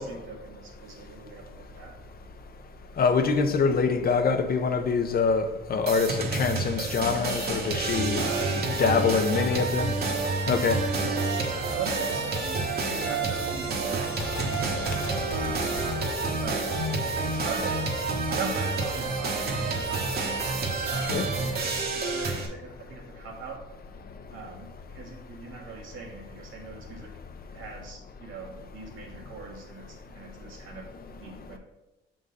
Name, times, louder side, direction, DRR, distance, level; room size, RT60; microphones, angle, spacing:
voice 1, 0.0-2.0 7.6-14.7 15.3-15.8 16.3-16.7 17.0-17.9 18.3-20.4 20.8-23.7 24.3-27.2 27.5-31.6, right 4 dB, 85° right, 0 dB, 1.5 m, -41 dB
voice 2, 3.0-5.4 5.7-8.2 8.8-9.9 10.5-10.8 21.1-21.3, left 5 dB, 50° left, 7 dB, 0.7 m, -24 dB
sound 1, 5.9-22.5, right 3 dB, 50° right, 1.1 m, -29 dB
Gunshot gunfire, 14.1-17.2, left 3 dB, 90° left, 1.1 m, -40 dB
6.4 x 3.8 x 3.9 m, 1.0 s
cardioid pair, 90°, 20 cm